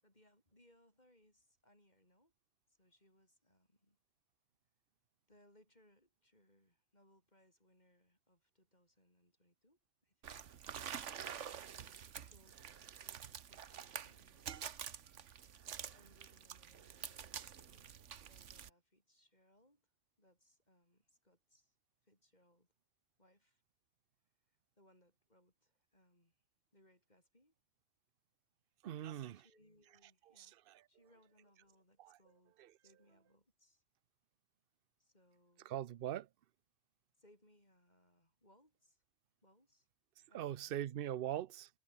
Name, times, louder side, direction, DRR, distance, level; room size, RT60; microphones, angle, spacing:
voice 1, 0.0-2.3 2.7-4.0 5.3-10.4 11.5-12.7 13.0-14.8 15.9-19.9 20.2-21.8 22.0-22.7 23.2-23.6 24.8-26.4 26.7-27.5 28.9-30.6 30.9-33.8 35.0-35.8 37.2-39.0 39.4-39.9 40.3-41.0, left 1 dB, 35° left, 7.1 m, -71 dB
sound 1, 10.2-18.7, right 8 dB, 80° right, 1.4 m, -48 dB
voice 2, 28.8-29.4 30.4-30.5 32.0-32.2 35.7-36.3 40.3-41.7, right 12 dB, 60° right, 0.8 m, -41 dB
omnidirectional pair, 1.2 m